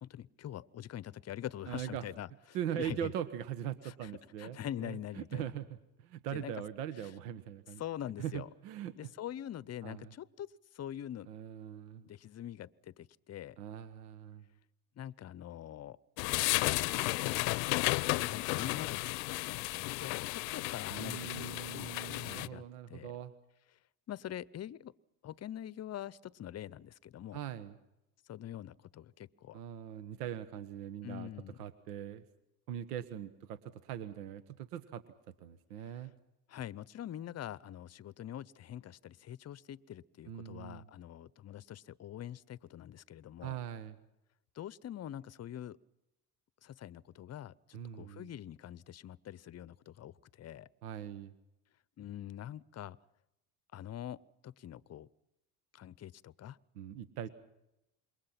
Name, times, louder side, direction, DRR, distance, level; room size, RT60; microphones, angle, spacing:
voice 1, 0.0-2.3 2.8-3.1 3.8-4.1 4.4-5.4 6.3-6.5 7.8-8.5 9.0-11.3 12.0-13.6 15.0-16.0 16.7-17.5 18.2-21.6 22.2-22.6 22.9-23.1 24.1-24.9 25.2-27.4 28.3-29.6 31.0-31.6 36.5-43.6 44.5-45.8 46.6-50.7 52.0-53.0 53.7-55.1 55.7-56.6, left 11 dB, 35° left, 21 dB, 0.7 m, -44 dB
voice 2, 1.7-2.1 2.5-7.8 8.2-9.1 9.8-10.1 11.3-12.1 13.6-14.5 20.9-23.3 27.3-27.8 29.5-31.3 31.6-32.2 32.7-35.0 35.4-36.1 40.3-40.9 43.4-44.0 47.7-48.3 50.8-51.3 56.7-57.3, right 10 dB, 80° right, 12 dB, 1.3 m, -41 dB
sound 1, 16.2-22.5, left 24 dB, 70° left, 0.7 m, -33 dB
27.0 x 22.5 x 5.9 m, 0.90 s
hypercardioid pair, 80°, 46 cm